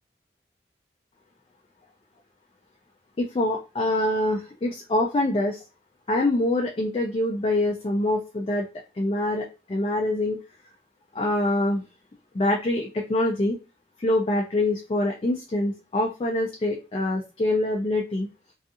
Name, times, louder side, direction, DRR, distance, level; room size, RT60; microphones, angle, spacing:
voice 1, 3.2-5.6 6.1-8.7 8.9-10.4 11.1-11.8 12.3-13.6 14.0-18.3, left 1 dB, 30° left, 1 dB, 0.3 m, -25 dB
2.4 x 2.3 x 2.6 m, 0.30 s
head